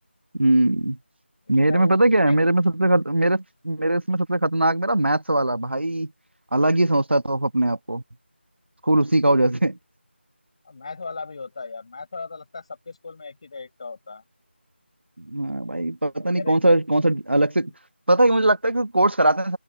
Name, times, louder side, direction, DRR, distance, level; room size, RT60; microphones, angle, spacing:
voice 1, 0.3-1.0 1.5-6.1 6.5-8.0 8.8-9.8 15.2-17.7 18.1-19.6, right 1 dB, 70° right, 1.7 m, -20 dB
voice 2, 1.7-2.4 10.6-14.2 16.3-16.7, left 4 dB, 30° left, 7.2 m, -37 dB
figure-of-eight pair, 170°, 6 cm